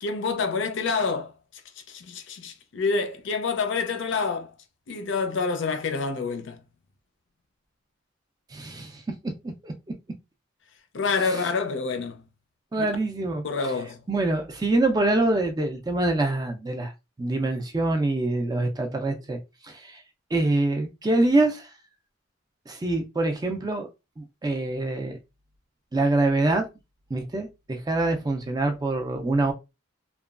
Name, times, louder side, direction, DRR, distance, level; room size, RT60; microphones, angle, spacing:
voice 1, 0.0-1.3 1.9-4.5 4.9-6.6 10.9-12.2 12.8-12.9 13.4-14.0, left 4 dB, 60° left, 0.5 m, -27 dB
voice 2, 8.5-9.0 9.6-9.7 12.7-13.4 14.1-16.9 17.2-19.4 19.6-20.0 20.3-21.7 22.7-23.9 24.2-25.2 25.9-26.6 27.1-29.5, right 2 dB, 20° right, 0.3 m, -25 dB
2.9 x 2.2 x 2.3 m
head